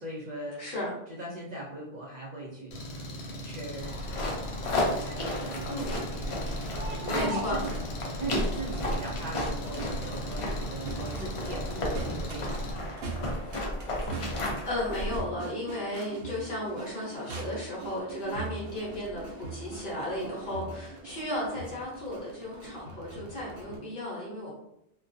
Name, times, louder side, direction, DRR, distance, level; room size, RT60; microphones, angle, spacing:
voice 1, 0.0-4.4 4.9-6.3 7.0-7.8 8.2-12.8, right 1 dB, 50° right, -4 dB, 0.6 m, -39 dB
voice 2, 0.6-0.9 5.7-5.9 7.1-7.6 14.7-24.5, left 1 dB, 60° left, -6 dB, 0.9 m, -34 dB
Engine, 2.7-12.7, left 1 dB, 90° left, 0.8 m, -40 dB
sound 1, 3.8-15.2, left 1 dB, 45° left, 0.5 m, -33 dB
Crowd, 6.0-23.8, right 3 dB, 80° right, 0.8 m, -42 dB
2.3 x 2.2 x 2.6 m, 0.80 s
omnidirectional pair, 1.0 m